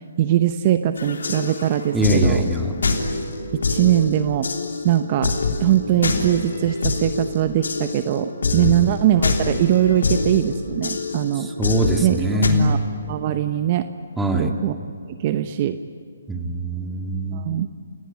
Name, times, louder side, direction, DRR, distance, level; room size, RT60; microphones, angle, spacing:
voice 1, 0.0-2.4 3.7-4.5 4.8-5.3 5.6-11.5 12.0-12.8 13.1-13.9 14.4-14.8 15.2-15.8 17.3-17.7, right 11 dB, 40° right, 9 dB, 0.9 m, -21 dB
sound 1, 1.0-12.5, left 3 dB, 80° left, 3.4 m, -26 dB
voice 2, 1.9-2.7 8.5-8.8 11.4-12.7 14.2-14.5 16.3-17.5, equal, 5° right, 3 dB, 2.1 m, -22 dB
28.0 x 18.0 x 9.9 m, 2.3 s
hypercardioid pair, 150°, 0 cm